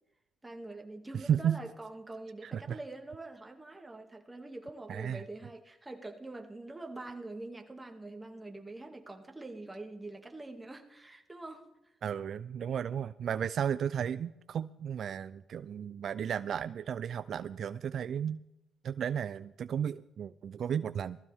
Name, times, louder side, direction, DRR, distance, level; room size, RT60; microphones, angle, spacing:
voice 1, 0.4-11.7, right 2 dB, 15° right, 3 dB, 2.3 m, -45 dB
voice 2, 1.1-1.6 2.4-2.8 4.9-5.2 12.0-18.4 18.8-21.2, right 8 dB, 60° right, 14 dB, 0.4 m, -34 dB
18.5 x 14.5 x 3.6 m, 0.88 s
cardioid pair, 90°, 0 cm